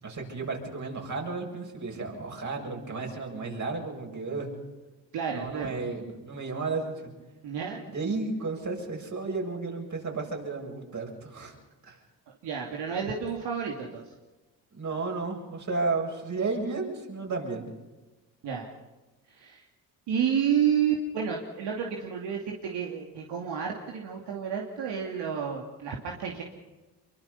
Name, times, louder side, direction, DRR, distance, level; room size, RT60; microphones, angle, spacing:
voice 1, 0.0-4.5 5.3-7.1 7.9-11.5 11.8-12.0 14.7-17.6, right 3 dB, 45° right, 1 dB, 7.6 m, -33 dB
voice 2, 5.1-5.8 7.4-7.8 12.4-14.0 18.4-18.7 19.3-19.6 20.1-26.4, right 7 dB, 80° right, -1 dB, 2.9 m, -30 dB
25.5 x 23.5 x 5.6 m, 1.2 s
cardioid pair, 75°, 41 cm